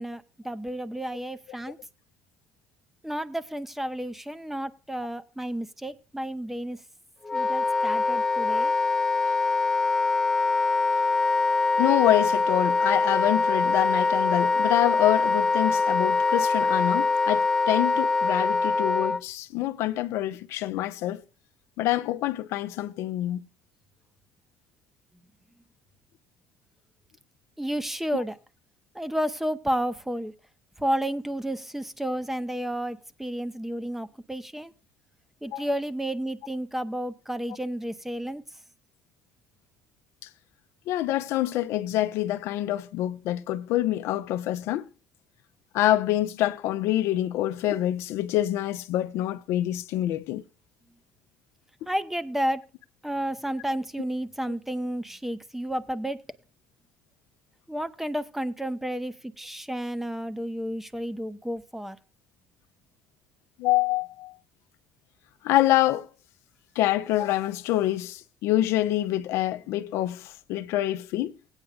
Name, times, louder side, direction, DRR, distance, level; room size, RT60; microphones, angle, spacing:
voice 1, 0.0-1.8 3.0-6.8 7.3-8.7 27.6-28.4 28.9-30.3 30.8-34.7 35.4-38.4 51.9-52.6 53.0-56.2 57.7-62.0, right 1 dB, 5° right, 0.8 m, -31 dB
Wind instrument woodwind instrument, 7.2-19.2, left 4 dB, 15° left, 0.5 m, -23 dB
voice 2, 11.8-21.2 21.8-23.4 35.4-35.7 40.9-44.9 45.7-50.4 63.6-64.3 65.4-66.1 66.8-71.4, left 14 dB, 70° left, 0.7 m, -26 dB
17.5 x 9.0 x 2.4 m
supercardioid pair, 70°, 5 cm